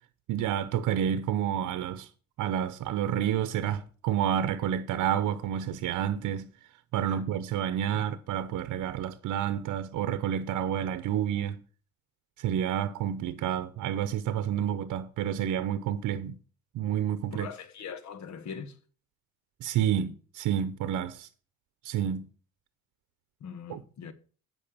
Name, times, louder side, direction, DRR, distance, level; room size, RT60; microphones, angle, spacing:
voice 1, 0.3-2.1 2.4-6.5 6.9-11.6 12.4-16.4 16.7-17.5 19.6-21.3 21.8-22.3 23.7-23.8, right 10 dB, 80° right, 0.7 m, -29 dB
voice 2, 17.3-18.8 23.4-24.1, left 6 dB, 65° left, 1.4 m, -41 dB
8.6 x 5.4 x 7.2 m
cardioid pair, 90°, 30 cm